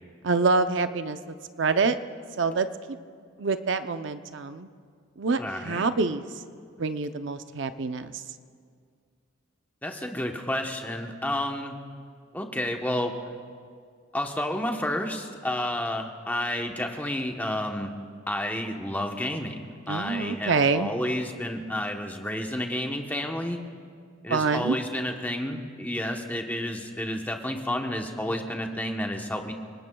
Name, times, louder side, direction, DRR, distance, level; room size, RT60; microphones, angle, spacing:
voice 1, 0.2-1.2 1.6-2.0 2.4-3.0 3.4-4.7 5.2-6.2 6.8-8.2 19.9-20.9 24.3-24.8, right 4 dB, 60° right, 10 dB, 0.6 m, -26 dB
voice 2, 5.4-5.9 9.8-11.8 12.3-13.1 14.1-17.9 18.3-23.6 24.2-29.5, left 1 dB, 10° left, 3 dB, 1.0 m, -30 dB
29.5 x 19.0 x 2.3 m, 2.1 s
head